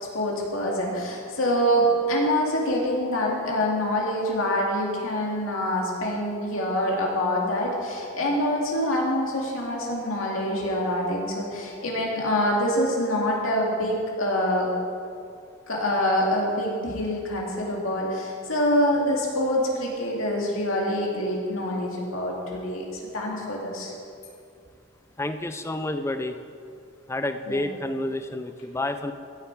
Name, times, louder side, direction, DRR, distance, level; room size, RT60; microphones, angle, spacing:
voice 1, 0.1-14.7 15.7-22.9 23.1-23.9 27.5-27.6, equal, 85° left, -2 dB, 2.3 m, -25 dB
voice 2, 25.2-26.4 27.1-29.1, left 1 dB, 15° left, 8 dB, 0.4 m, -29 dB
15.5 x 7.1 x 4.7 m, 2.4 s
head